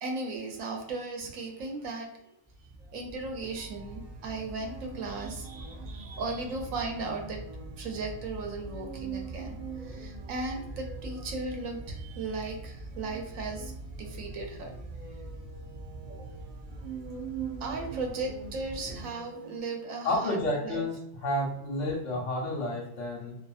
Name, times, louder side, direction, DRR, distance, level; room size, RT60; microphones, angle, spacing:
voice 1, 0.0-2.1 2.8-7.4 7.8-13.7 14.0-14.7 16.2-16.3 17.6-20.9, right 3 dB, 90° right, 2 dB, 1.1 m, -36 dB
sound 1, 2.4-19.0, right 1 dB, ahead, 0.3 m, -44 dB
sound 2, 3.5-20.1, right 7 dB, 40° right, 0.6 m, -45 dB
voice 2, 20.0-20.9 21.2-23.4, left 1 dB, 70° left, -3 dB, 1.2 m, -30 dB
2.6 x 2.6 x 2.4 m, 0.78 s
omnidirectional pair, 1.4 m